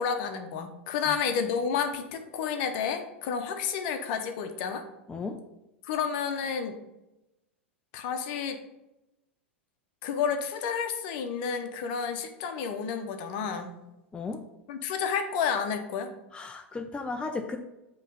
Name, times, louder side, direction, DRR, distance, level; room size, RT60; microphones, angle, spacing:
voice 1, 0.0-4.8 5.8-6.8 7.9-8.6 10.0-13.7 14.7-16.1, left 6 dB, 50° left, 7 dB, 0.9 m, -30 dB
voice 2, 5.1-5.4 14.1-14.4 16.3-17.6, left 3 dB, 15° left, 5 dB, 0.5 m, -35 dB
7.5 x 3.1 x 5.2 m, 0.94 s
hypercardioid pair, 95°, 7 cm